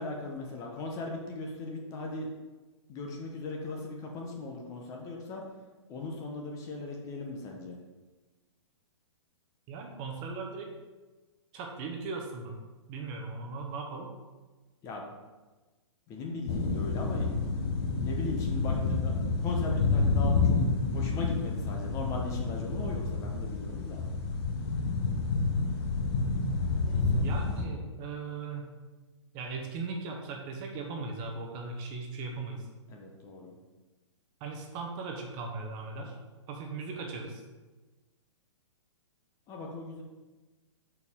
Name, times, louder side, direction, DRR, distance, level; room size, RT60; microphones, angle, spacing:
voice 1, 0.0-2.3 2.9-5.4 5.9-7.8 14.8-15.0 16.1-17.4 18.0-19.1 19.4-20.6 20.9-24.1 26.8-27.3 32.9-33.5 39.5-40.0, left 3 dB, 20° left, 0 dB, 0.8 m, -38 dB
voice 2, 9.7-10.7 11.5-12.6 12.9-14.1 27.1-28.8 29.3-32.7 34.4-36.1 36.5-37.4, right 4 dB, 25° right, 1 dB, 0.9 m, -38 dB
sound 1, 16.5-27.6, left 3 dB, 50° left, 0.9 m, -29 dB
6.4 x 4.6 x 3.6 m, 1.2 s
hypercardioid pair, 150°, 16 cm